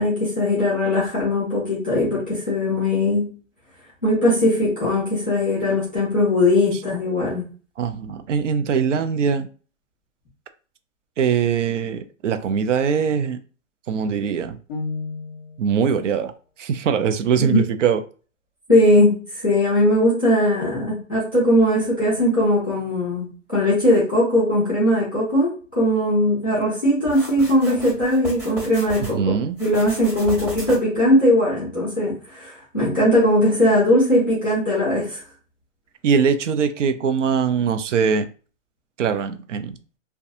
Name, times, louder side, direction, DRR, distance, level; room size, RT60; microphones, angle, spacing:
voice 1, 0.0-3.3 4.0-7.5 17.5-17.6 18.7-29.3 29.6-35.2, left 1 dB, 10° left, -12 dB, 0.3 m, -19 dB
voice 2, 7.8-9.5 11.2-13.4 13.9-14.6 15.6-16.3 16.6-18.0 29.0-29.6 36.0-38.3 39.0-39.8, right 6 dB, 70° right, 10 dB, 0.5 m, -22 dB
sound 1, 14.7-15.7, left 3 dB, 50° left, 0.7 m, -31 dB
sound 2, 27.1-29.1 29.5-31.0, equal, 25° right, 1.4 m, -35 dB
2.6 x 2.2 x 2.4 m, 0.38 s
hypercardioid pair, 150°, 38 cm